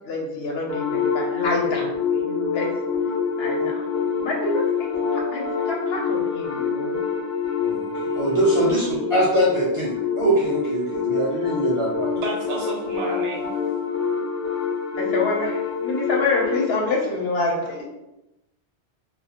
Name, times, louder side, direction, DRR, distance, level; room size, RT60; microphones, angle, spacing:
voice 1, 0.0-2.7 3.3-3.8 4.2-7.0 15.0-17.9, left 3 dB, 65° left, -2 dB, 0.9 m, -27 dB
sound 1, 0.7-16.7, left 6 dB, 25° left, 0.3 m, -26 dB
voice 2, 7.6-12.1, right 1 dB, 40° right, -6 dB, 0.5 m, -23 dB
voice 3, 12.2-13.5, right 3 dB, 70° right, 0 dB, 0.8 m, -30 dB
2.3 x 2.3 x 2.8 m, 0.92 s
omnidirectional pair, 1.1 m